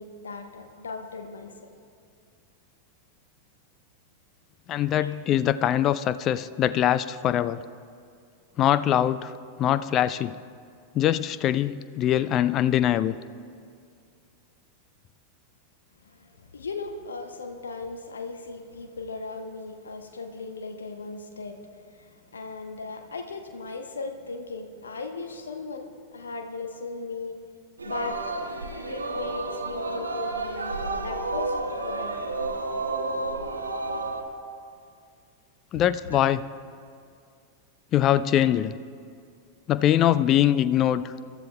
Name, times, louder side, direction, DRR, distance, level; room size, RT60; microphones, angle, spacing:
voice 1, 0.0-1.7 5.0-5.2 16.0-27.4 27.8-28.4 28.7-32.2 36.0-36.2, left 3 dB, 70° left, 5 dB, 1.0 m, -37 dB
voice 2, 4.7-7.6 8.6-9.3 9.6-10.3 10.9-13.2 35.7-36.5 37.9-38.8 39.7-41.1, left 11 dB, 35° left, 15 dB, 0.4 m, -23 dB
Singing, 27.8-34.2, right 3 dB, 75° right, 1.2 m, -31 dB
26.0 x 13.0 x 2.3 m, 2.2 s
figure-of-eight pair, 90°, 0 cm